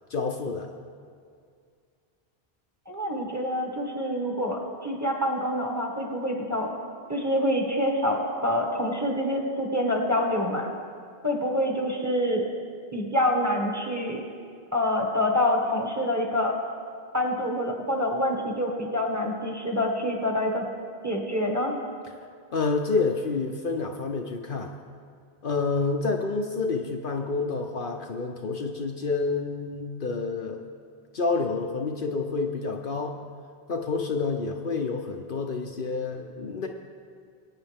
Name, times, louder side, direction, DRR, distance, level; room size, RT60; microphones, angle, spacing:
voice 1, 0.1-0.7 22.5-24.8 25.4-30.6 31.1-33.2 33.7-36.7, left 4 dB, 60° left, 2 dB, 0.9 m, -28 dB
voice 2, 2.9-6.7 7.1-10.8 11.2-12.5 12.9-14.2 14.7-16.6 17.1-20.6 21.0-21.7, left 1 dB, 15° right, -1 dB, 1.7 m, -26 dB
21.5 x 9.1 x 3.5 m, 2.2 s
omnidirectional pair, 1.0 m